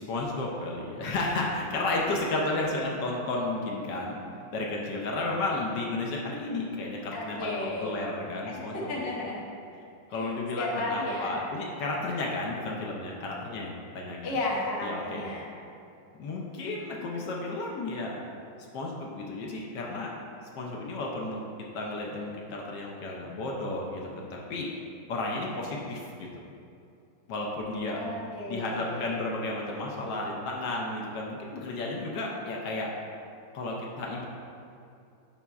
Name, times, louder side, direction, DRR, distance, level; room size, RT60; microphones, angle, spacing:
voice 1, 0.0-4.2 4.5-9.1 10.1-14.4 14.8-15.2 16.2-18.2 18.7-20.1 20.5-21.4 21.7-24.7 25.1-26.1 27.3-28.0 28.5-32.9 33.5-34.3, left 2 dB, 70° left, -2 dB, 1.2 m, -32 dB
voice 2, 7.1-8.1 8.5-9.5 10.6-11.4 14.2-15.5 28.0-29.1, left 2 dB, 50° left, -3 dB, 0.8 m, -33 dB
9.8 x 4.1 x 2.3 m, 2.6 s
omnidirectional pair, 2.1 m